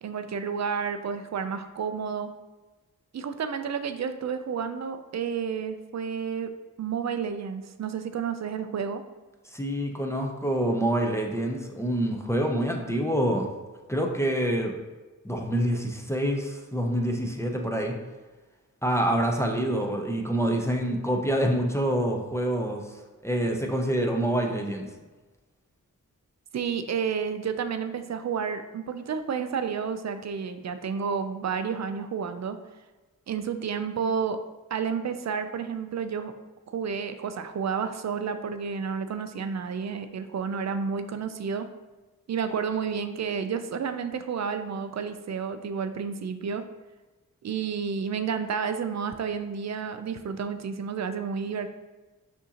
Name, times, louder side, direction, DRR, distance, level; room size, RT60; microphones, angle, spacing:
voice 1, 0.0-2.3 3.1-6.5 6.8-9.0 26.5-32.6 33.3-34.4 34.7-36.3 36.7-41.7 42.3-46.7 47.4-51.7, right 6 dB, 50° right, 9 dB, 0.4 m, -31 dB
voice 2, 9.5-13.5 13.9-14.8 15.2-18.0 18.8-22.9 23.2-24.9, right 1 dB, 10° left, 1 dB, 0.5 m, -26 dB
6.1 x 2.7 x 2.8 m, 1.2 s
cardioid pair, 65°, 34 cm